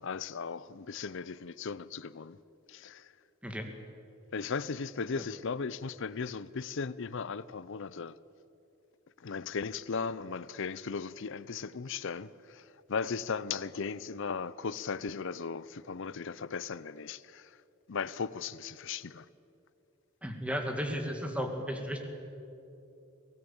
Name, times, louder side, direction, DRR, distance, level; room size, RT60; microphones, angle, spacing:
voice 1, 0.0-2.4 2.7-3.1 4.3-8.2 9.2-17.6 17.9-19.3, left 5 dB, 60° left, 0.6 m, -37 dB
voice 2, 20.2-22.1, equal, 5° right, 2.1 m, -34 dB
24.0 x 18.0 x 7.3 m
head